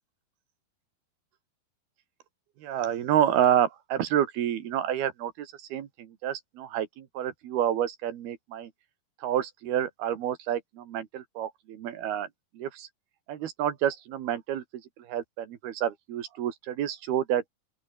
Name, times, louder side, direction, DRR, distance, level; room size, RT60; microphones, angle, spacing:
voice 1, 2.6-8.7 9.2-12.3 12.6-12.9 13.3-14.6 15.0-17.4, right 10 dB, 75° right, 3.7 m, -29 dB
open air
omnidirectional pair, 4.6 m